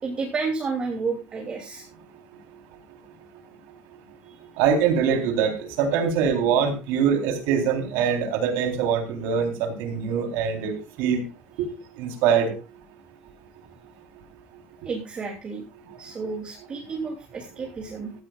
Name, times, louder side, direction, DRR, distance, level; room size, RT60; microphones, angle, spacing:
voice 1, 0.0-1.9 14.8-15.6 16.0-18.1, right 4 dB, 25° right, 1 dB, 3.0 m, -31 dB
voice 2, 4.6-11.2 12.0-12.5, right 7 dB, 85° right, 4 dB, 4.0 m, -23 dB
15.5 x 14.0 x 2.5 m, 0.29 s
cardioid pair, 150°, 4 cm